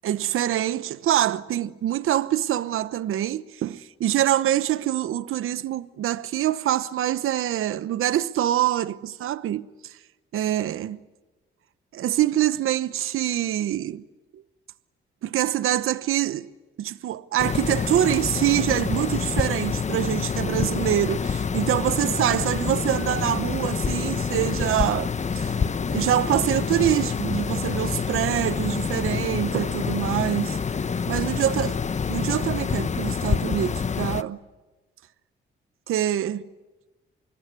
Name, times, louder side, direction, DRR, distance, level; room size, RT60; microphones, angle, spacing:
voice 1, 0.0-10.0 10.3-11.0 11.9-14.0 14.3-14.4 15.2-16.5 16.8-25.6 25.9-30.6 31.1-31.8 32.1-34.4 35.9-36.4, right 12 dB, 80° right, 1.0 m, -25 dB
sound 1, 17.4-34.2, left 6 dB, 35° left, 1.0 m, -27 dB
26.0 x 22.0 x 9.8 m
cardioid pair, 100°, 21 cm